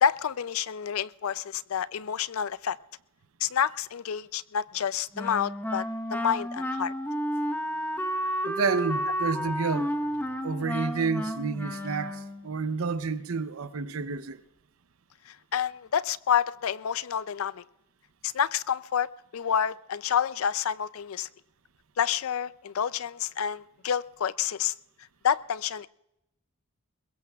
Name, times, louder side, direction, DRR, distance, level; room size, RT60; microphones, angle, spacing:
voice 1, 0.0-2.8 3.4-5.9 6.1-6.9 15.3-17.6 18.2-19.1 19.3-21.3 22.0-24.7 25.2-25.9, left 8 dB, 85° left, 0.4 m, -28 dB
Wind instrument woodwind instrument, 5.1-12.5, equal, 10° left, 1.0 m, -31 dB
voice 2, 8.4-9.9 10.4-14.4, right 4 dB, 90° right, 0.7 m, -30 dB
22.5 x 21.5 x 2.4 m
head